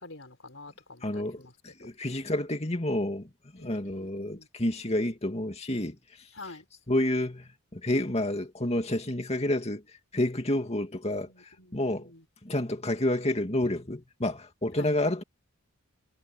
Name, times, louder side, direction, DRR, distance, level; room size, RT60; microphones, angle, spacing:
voice 1, 0.0-1.5 1.8-1.9 3.5-4.5 6.4-6.7 11.2-12.2 14.8-14.9, left 2 dB, 60° left, 5.2 m, -47 dB
voice 2, 1.0-6.0 6.9-9.8 10.1-12.1 12.4-15.2, left 1 dB, 30° left, 2.4 m, -29 dB
head